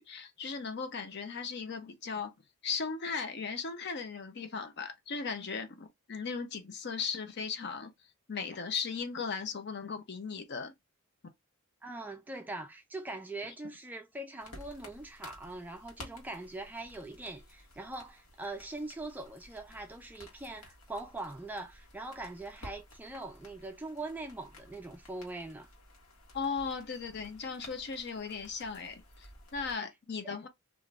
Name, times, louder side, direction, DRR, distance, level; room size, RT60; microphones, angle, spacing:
voice 1, 0.0-2.3 2.6-7.9 8.3-10.7 26.3-30.5, left 5 dB, 50° left, 0.5 m, -37 dB
voice 2, 11.8-25.7 30.2-30.4, right 2 dB, 10° right, 0.3 m, -42 dB
sound 1, 14.4-29.7, left 1 dB, 80° left, 1.3 m, -54 dB
2.5 x 2.5 x 3.2 m
head